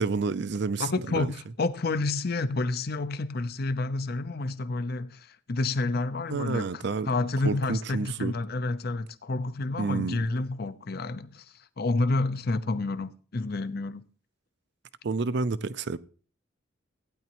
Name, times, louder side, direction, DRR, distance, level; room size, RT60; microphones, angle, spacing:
voice 1, 0.0-0.9 1.1-1.3 6.3-7.1 7.4-8.3 9.8-10.2 15.0-16.0, right 4 dB, 60° right, 0.5 m, -29 dB
voice 2, 0.8-14.0, left 2 dB, 55° left, 0.7 m, -29 dB
15.5 x 9.5 x 3.0 m
head